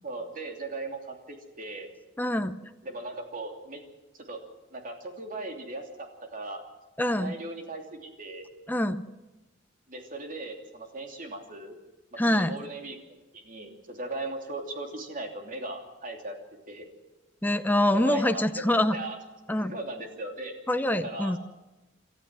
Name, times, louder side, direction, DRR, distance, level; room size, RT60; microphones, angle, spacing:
voice 1, 0.0-1.9 2.8-3.8 4.2-4.4 4.7-6.6 7.2-8.5 9.9-11.8 12.3-13.0 13.3-16.4 16.7-16.8 17.9-18.6 18.9-19.2 19.6-20.5 21.0-21.4, right 2 dB, 45° right, 3 dB, 3.0 m, -38 dB
voice 2, 2.2-2.6 7.0-7.3 8.7-9.0 12.2-12.6 17.4-19.0 19.5-19.7 20.7-21.4, left 1 dB, 10° left, 9 dB, 0.6 m, -25 dB
28.0 x 13.0 x 7.6 m, 1.1 s
head